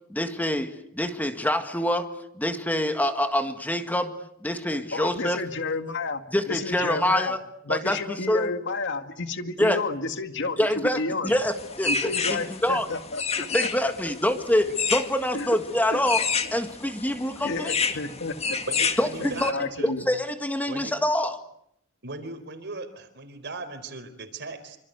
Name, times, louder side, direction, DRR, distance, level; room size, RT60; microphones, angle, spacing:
voice 1, 0.1-2.1 2.4-4.1 4.4-5.4 6.3-7.4 7.7-8.0 8.3-8.5 9.6-9.8 10.6-12.9 13.5-16.2 16.5-17.7 19.0-19.5 19.8-21.4, left 1 dB, 10° left, 7 dB, 1.8 m, -25 dB
voice 2, 4.9-7.4 7.6-11.4 11.9-13.9 15.3-15.6 15.9-16.0 16.4-16.5 17.4-18.6 19.2-20.1, left 3 dB, 60° left, 8 dB, 2.1 m, -31 dB
sound 1, 11.3-19.5, left 5 dB, 30° left, 2.0 m, -30 dB
voice 3, 18.7-19.9 20.7-20.9 22.0-24.8, right 3 dB, 55° right, 10 dB, 4.3 m, -37 dB
27.0 x 25.5 x 8.1 m, 0.75 s
head